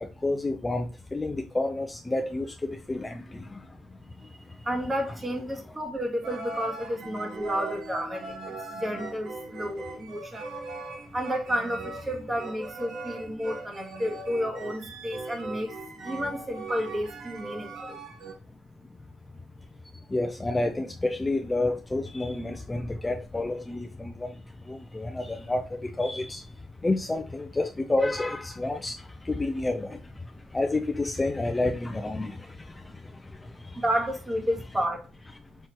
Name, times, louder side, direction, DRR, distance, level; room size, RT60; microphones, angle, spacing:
voice 1, 0.0-3.6 20.1-24.4 24.7-26.4 26.8-30.0 30.5-33.0 33.6-33.8, left 2 dB, 20° left, 0.5 m, -29 dB
voice 2, 4.3-10.6 11.1-18.0 33.7-35.1, equal, 20° right, 1.3 m, -31 dB
sound 1, 6.2-18.3, right 3 dB, 75° right, 1.4 m, -39 dB
5.7 x 3.1 x 2.9 m
cardioid pair, 90°, 0 cm